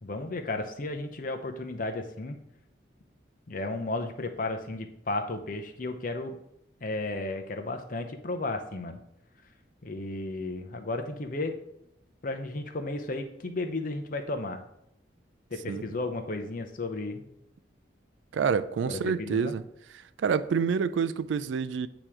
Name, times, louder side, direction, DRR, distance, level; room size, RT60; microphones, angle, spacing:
voice 1, 0.0-2.4 3.5-6.4 6.8-9.0 9.8-11.6 12.2-14.6 15.5-17.3 18.9-19.5, left 2 dB, 50° left, 0.7 m, -34 dB
voice 2, 18.3-19.6 20.2-21.9, right 6 dB, 80° right, 0.3 m, -27 dB
8.8 x 3.0 x 4.8 m
head